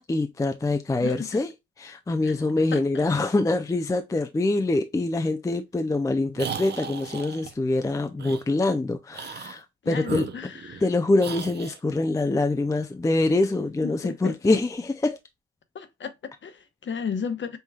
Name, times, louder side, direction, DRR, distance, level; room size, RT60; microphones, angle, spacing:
voice 1, 0.0-1.5 1.8-10.3 10.8-15.2, left 2 dB, 10° left, 0.4 m, -25 dB
voice 2, 2.7-3.0 9.8-10.8 13.8-14.3 15.7-17.6, left 6 dB, 40° left, 0.9 m, -34 dB
sound 1, 6.4-7.5 8.2-8.4 9.1-9.6 10.0-10.9 11.2-11.8, right 7 dB, 35° right, 0.7 m, -36 dB
5.5 x 3.1 x 2.3 m
cardioid pair, 90°, 30 cm